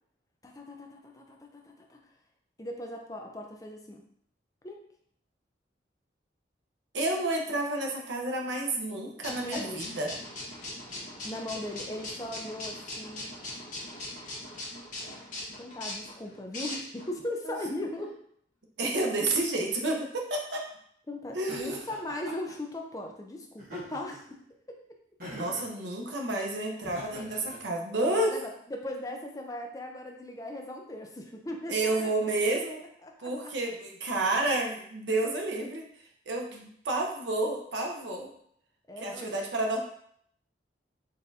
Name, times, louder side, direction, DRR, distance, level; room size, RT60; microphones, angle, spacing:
voice 1, 0.4-2.0 2.6-4.0 4.6-4.8 9.4-9.9 11.2-13.3 15.6-18.2 21.1-24.2 24.7-24.8 28.1-32.1 33.0-33.5 38.9-39.4, left 1 dB, 20° left, 2 dB, 0.4 m, -38 dB
voice 2, 6.9-10.1 17.4-17.5 18.8-20.6 21.3-21.8 25.3-28.4 31.7-32.8 33.2-35.8 36.3-38.3 39.0-39.8, right 2 dB, 75° right, 1 dB, 0.8 m, -30 dB
sound 1, 9.2-17.1, left 1 dB, 45° left, 1.0 m, -40 dB
Laughter, 21.5-22.5 23.6-24.3 25.2-25.7 26.8-27.6, equal, 50° right, 1.5 m, -43 dB
4.1 x 3.5 x 2.7 m, 0.67 s
head